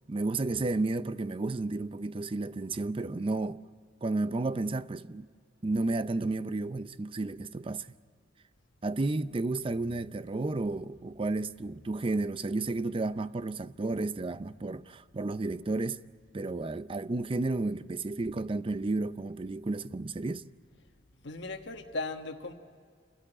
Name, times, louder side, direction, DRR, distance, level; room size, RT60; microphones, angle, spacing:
voice 1, 0.1-3.6 4.0-5.3 5.6-7.9 8.8-16.0 16.3-20.4, right 2 dB, 30° right, 0.5 m, -32 dB
voice 2, 21.2-22.5, left 3 dB, 70° left, 1.2 m, -37 dB
28.5 x 13.5 x 9.7 m
head